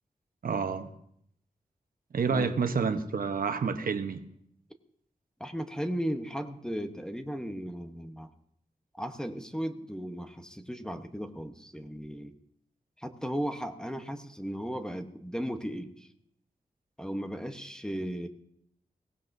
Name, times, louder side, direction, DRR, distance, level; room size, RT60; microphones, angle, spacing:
voice 1, 0.4-0.9 2.1-4.2, right 5 dB, 80° right, 8 dB, 1.0 m, -29 dB
voice 2, 2.3-2.6 5.4-8.3 9.0-12.3 13.0-16.1 17.0-18.3, equal, 5° left, 6 dB, 1.0 m, -36 dB
22.0 x 18.0 x 2.7 m, 0.70 s
wide cardioid pair, 130°, 15 cm